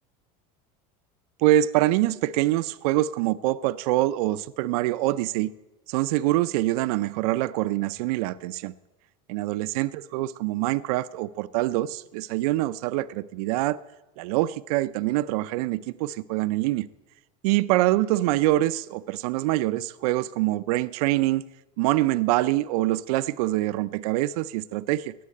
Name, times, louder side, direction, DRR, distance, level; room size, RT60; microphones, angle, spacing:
voice 1, 1.4-5.5 5.9-8.7 9.3-13.8 14.2-16.9 17.4-21.4 21.8-25.1, right 16 dB, 80° right, 0.6 m, -25 dB
18.0 x 7.5 x 8.9 m
supercardioid pair, 145°, 19 cm